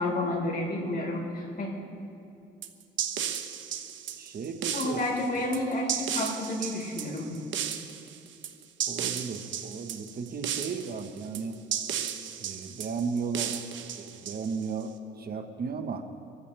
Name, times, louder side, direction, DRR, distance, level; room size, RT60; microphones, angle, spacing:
voice 1, 0.0-1.7 4.7-7.3, left 1 dB, 50° left, -2 dB, 4.5 m, -30 dB
sound 1, 2.6-14.8, right 9 dB, 70° right, 1.0 m, -34 dB
voice 2, 4.2-5.0 8.9-11.6 12.4-13.6 14.0-16.0, right 5 dB, 50° right, 6 dB, 1.2 m, -35 dB
25.0 x 14.5 x 3.4 m, 2.6 s
cardioid pair, 90°, 20 cm